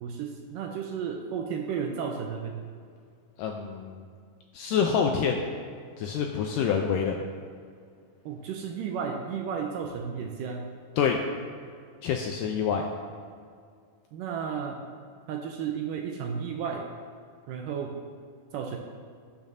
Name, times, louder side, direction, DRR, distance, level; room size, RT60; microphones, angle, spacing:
voice 1, 0.0-2.5 8.3-10.6 14.1-14.8 15.3-16.9 17.5-18.0 18.5-18.8, right 7 dB, 80° right, 2 dB, 2.1 m, -33 dB
voice 2, 3.4-4.0 4.5-5.4 6.0-7.2 11.0-11.2 12.0-12.9, left 7 dB, 85° left, 2 dB, 2.0 m, -26 dB
17.5 x 7.2 x 2.7 m, 2.1 s
omnidirectional pair, 4.4 m